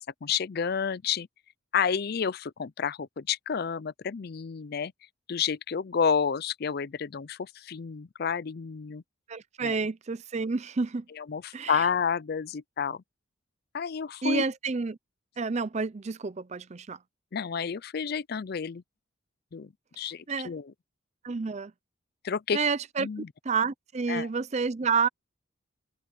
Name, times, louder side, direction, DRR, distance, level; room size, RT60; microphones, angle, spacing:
voice 1, 0.2-1.3 1.7-4.9 5.3-9.0 9.6-9.8 11.1-13.0 13.7-14.4 17.3-18.8 19.5-20.7 22.2-22.6 23.0-23.3 24.1-24.3, left 6 dB, 50° left, 0.4 m, -30 dB
voice 2, 9.3-11.0 11.5-11.8 14.2-15.0 15.4-17.0 20.3-20.5 21.2-21.7 22.5-25.1, right 4 dB, 35° right, 0.5 m, -29 dB
head